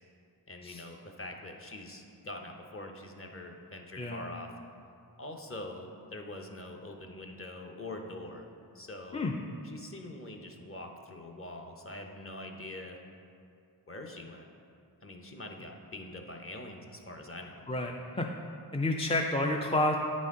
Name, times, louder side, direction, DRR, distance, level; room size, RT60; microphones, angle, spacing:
voice 1, 0.5-4.5 5.2-9.2 9.6-13.0 13.9-14.5 15.0-17.7, left 1 dB, 35° left, 2 dB, 0.7 m, -44 dB
voice 2, 17.7-18.3 18.7-20.0, left 2 dB, 15° left, 1 dB, 0.4 m, -30 dB
9.2 x 4.2 x 3.6 m, 2.5 s
wide cardioid pair, 55°, 41 cm